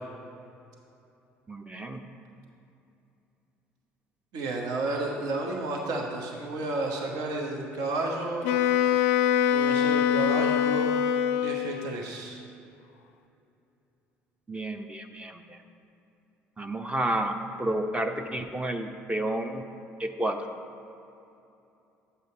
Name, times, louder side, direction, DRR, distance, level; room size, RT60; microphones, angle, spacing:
voice 1, 1.5-2.0 14.5-15.6 16.6-19.6 20.0-20.5, right 1 dB, 15° right, 6 dB, 0.7 m, -31 dB
voice 2, 4.3-8.5 9.5-10.9 11.4-12.4, right 2 dB, 65° right, 0 dB, 1.1 m, -31 dB
Wind instrument woodwind instrument, 8.4-12.0, left 9 dB, 75° left, 0.4 m, -24 dB
8.3 x 8.1 x 4.4 m, 2.8 s
hypercardioid pair, 55°, 7 cm